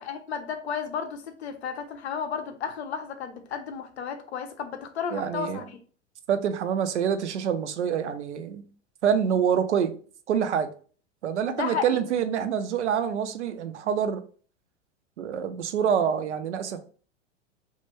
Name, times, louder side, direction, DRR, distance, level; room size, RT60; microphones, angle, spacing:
voice 1, 0.0-5.8 11.5-12.0, left 7 dB, 60° left, 0.5 m, -33 dB
voice 2, 5.1-5.6 6.3-8.6 9.0-10.0 10.3-10.7 11.2-14.2 15.2-16.8, right 8 dB, 70° right, 0.5 m, -26 dB
2.2 x 2.2 x 3.0 m
figure-of-eight pair, 90°, 36 cm